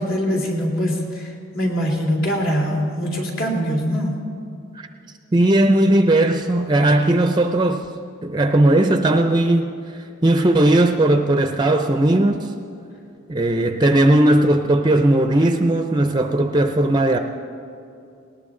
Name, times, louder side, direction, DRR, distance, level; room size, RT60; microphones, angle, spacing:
voice 1, 0.0-4.2, equal, 65° left, -1 dB, 2.9 m, -23 dB
voice 2, 5.3-7.9 8.2-9.8 10.2-12.6 13.3-17.2, right 1 dB, 20° right, 6 dB, 0.5 m, -17 dB
19.5 x 19.0 x 3.8 m, 2.6 s
head